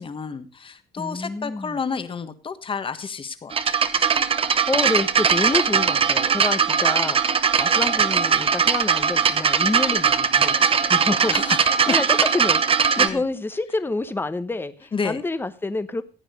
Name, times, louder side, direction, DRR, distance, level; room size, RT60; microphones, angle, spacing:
voice 1, 0.0-3.8 11.3-11.6 13.0-13.2 14.9-15.2, left 5 dB, 30° left, 11 dB, 1.4 m, -30 dB
voice 2, 1.0-1.8 4.4-16.0, left 2 dB, 15° left, 12 dB, 1.0 m, -28 dB
sound 1, 3.5-13.1, right 6 dB, 35° right, 0.9 m, -20 dB
15.5 x 8.9 x 5.1 m, 0.36 s
cardioid pair, 110°, 17 cm